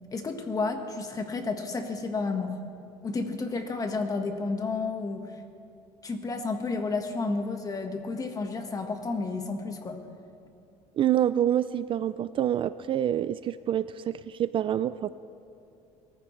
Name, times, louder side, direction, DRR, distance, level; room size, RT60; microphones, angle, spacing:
voice 1, 0.1-2.6 3.0-5.3 6.0-10.0, left 3 dB, 25° left, 5 dB, 1.5 m, -31 dB
voice 2, 11.0-15.1, right 11 dB, 40° right, 15 dB, 0.3 m, -27 dB
22.0 x 14.5 x 3.2 m, 2.7 s
cardioid pair, 115°, 14 cm